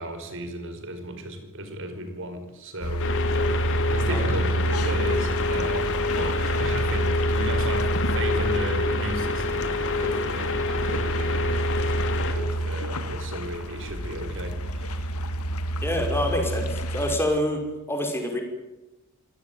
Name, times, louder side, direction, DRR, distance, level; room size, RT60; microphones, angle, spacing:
voice 1, 0.0-3.1 3.9-15.2, right 1 dB, 60° right, 8 dB, 5.4 m, -35 dB
sound 1, 2.8-17.2, right 1 dB, 85° left, 1.9 m, -28 dB
sound 2, 3.0-12.3, left 3 dB, 60° left, 3.1 m, -27 dB
voice 2, 15.8-17.6 17.9-18.4, left 1 dB, 10° left, 3 dB, 5.6 m, -26 dB
25.5 x 18.0 x 9.5 m, 0.97 s
head